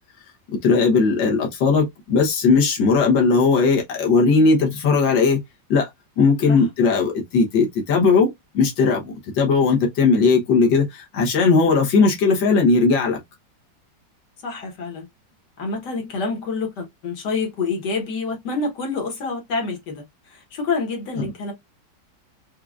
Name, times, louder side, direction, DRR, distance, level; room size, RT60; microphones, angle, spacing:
voice 1, 0.5-5.4 5.7-5.9 6.2-13.2 21.2-21.3, left 4 dB, 90° left, 1.7 m, -18 dB
voice 2, 14.4-15.1 15.6-21.5, left 4 dB, 70° left, 1.8 m, -27 dB
4.7 x 2.3 x 2.4 m
omnidirectional pair, 1.9 m